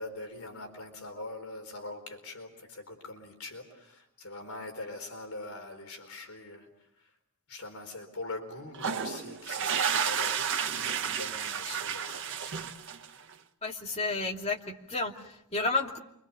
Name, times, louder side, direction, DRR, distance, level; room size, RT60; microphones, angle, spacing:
voice 1, 0.0-6.7 7.0-7.1 7.5-12.5, left 2 dB, 70° left, 4 dB, 4.3 m, -43 dB
sound 1, 8.7-13.3, right 7 dB, 60° right, 1.6 m, -31 dB
voice 2, 13.6-16.0, left 2 dB, 30° left, 1 dB, 2.6 m, -31 dB
29.0 x 24.0 x 7.0 m, 0.76 s
head